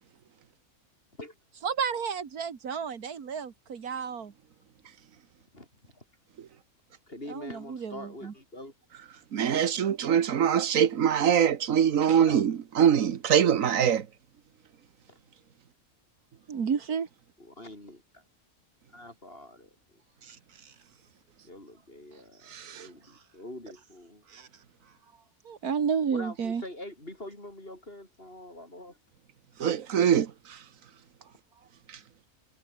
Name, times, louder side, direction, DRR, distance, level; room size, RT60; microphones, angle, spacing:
voice 1, 1.6-4.3 7.3-8.3 16.5-17.1 20.2-20.4 20.7-20.8 24.3-24.5 25.5-26.6, right 6 dB, 85° right, 2.2 m, -31 dB
voice 2, 7.1-8.7 12.2-12.4 15.1-15.2 17.4-18.2 18.9-19.7 21.4-24.2 26.1-29.0, left 1 dB, 40° left, 6.0 m, -44 dB
voice 3, 9.3-14.1 22.5-22.9 29.6-30.6, right 8 dB, 65° right, 1.5 m, -23 dB
omnidirectional pair, 1.5 m